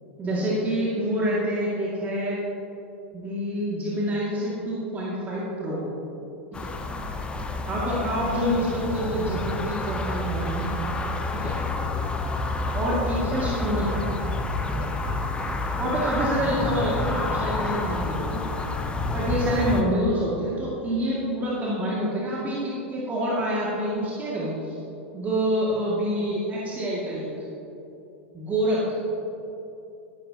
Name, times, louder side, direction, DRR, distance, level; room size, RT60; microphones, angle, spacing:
voice 1, 0.2-2.4 3.1-5.8 6.6-6.7 7.7-10.7 11.3-11.5 12.7-14.1 14.8-14.9 15.8-18.4 19.1-24.8 25.1-27.3 28.3-29.0, equal, 25° right, -6 dB, 2.4 m, -27 dB
sound 1, 6.5-19.8, left 2 dB, 15° left, 0.9 m, -29 dB
14.0 x 12.0 x 3.0 m, 2.9 s
figure-of-eight pair, 90°, 7 cm